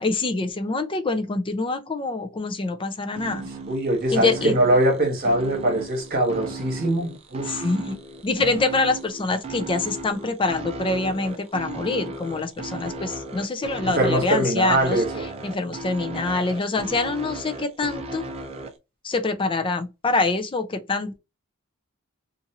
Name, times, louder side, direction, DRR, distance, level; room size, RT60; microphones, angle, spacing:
voice 1, 0.0-3.4 4.1-4.5 7.5-8.0 8.2-15.0 15.4-18.2 19.0-21.2, left 3 dB, 25° left, 0.5 m, -25 dB
sound 1, 3.1-18.7, right 2 dB, 30° right, 0.5 m, -36 dB
voice 2, 3.7-7.7 13.8-15.4, right 1 dB, 45° right, 1.2 m, -22 dB
2.7 x 2.5 x 2.7 m
head